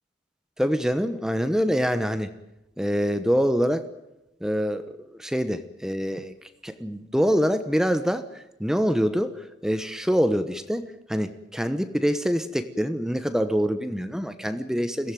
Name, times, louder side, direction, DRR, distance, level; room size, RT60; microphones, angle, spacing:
voice 1, 0.6-2.3 2.8-3.8 4.4-6.3 6.6-10.8 11.1-15.1, equal, 5° right, 10 dB, 1.0 m, -25 dB
22.5 x 17.0 x 9.2 m, 0.92 s
head